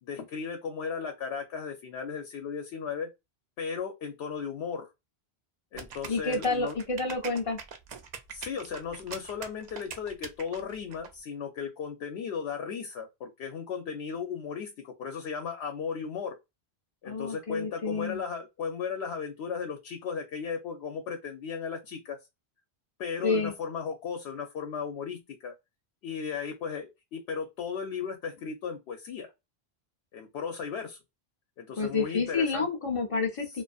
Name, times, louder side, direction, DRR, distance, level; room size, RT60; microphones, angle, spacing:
voice 1, 0.0-3.1 3.6-4.9 5.7-6.8 8.3-16.4 17.0-22.2 23.0-25.5 26.0-29.3 30.1-31.0 31.6-32.7, left 6 dB, 80° left, 0.8 m, -36 dB
sound 1, 5.8-11.1, right 6 dB, 55° right, 0.5 m, -43 dB
voice 2, 6.1-7.6 17.1-18.2 23.2-23.5 31.8-33.6, left 3 dB, 40° left, 0.5 m, -29 dB
2.5 x 2.4 x 2.3 m
omnidirectional pair, 1.1 m